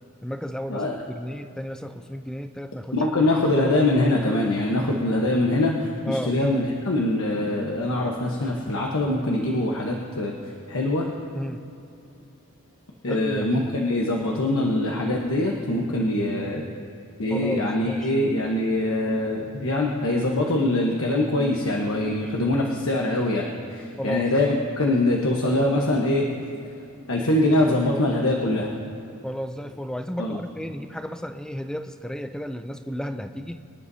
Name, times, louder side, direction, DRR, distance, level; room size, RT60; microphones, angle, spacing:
voice 1, 0.2-3.3 6.1-6.4 11.3-11.6 13.1-13.5 17.3-18.1 24.0-24.3 29.2-33.6, equal, 5° left, 8 dB, 0.4 m, -33 dB
voice 2, 2.9-10.3 10.7-11.1 13.0-16.6 17.2-26.3 27.1-28.7 30.2-30.4, left 1 dB, 65° left, -1 dB, 1.1 m, -23 dB
24.5 x 11.0 x 2.8 m, 2.8 s
head